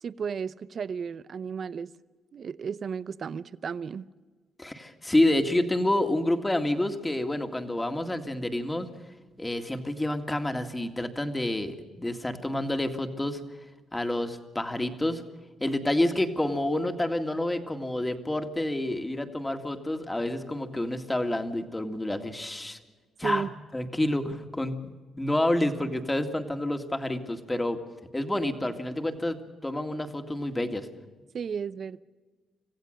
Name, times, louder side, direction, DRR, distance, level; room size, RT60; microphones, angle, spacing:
voice 1, 0.0-1.9 2.3-4.1 23.2-23.5 31.3-32.0, right 6 dB, 50° right, 18 dB, 0.6 m, -34 dB
voice 2, 4.6-8.9 9.4-13.4 13.9-15.2 15.6-22.8 23.2-23.5 23.7-24.8 25.2-27.8 28.1-29.4 29.6-30.9, left 1 dB, 10° left, 6 dB, 2.0 m, -28 dB
26.0 x 15.5 x 6.5 m, 1.4 s
cardioid pair, 90°, 0 cm